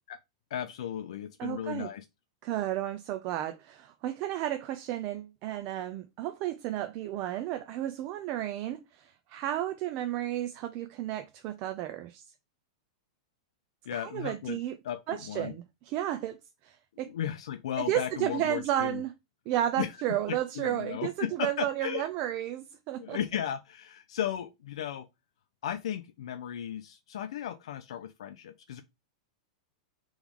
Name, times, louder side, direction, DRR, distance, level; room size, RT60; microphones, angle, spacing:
voice 1, 0.5-2.0 13.9-14.6 14.8-15.5 17.0-19.0 19.8-20.0 20.3-22.1 23.0-25.1 25.6-28.8, left 10 dB, 75° left, 0.5 m, -35 dB
voice 2, 1.4-1.9 2.4-12.2 13.9-14.8 15.1-16.4 16.6-17.1 17.8-19.1 19.5-23.2, right 13 dB, 40° right, 0.4 m, -32 dB
3.5 x 3.0 x 3.6 m
supercardioid pair, 145°, 3 cm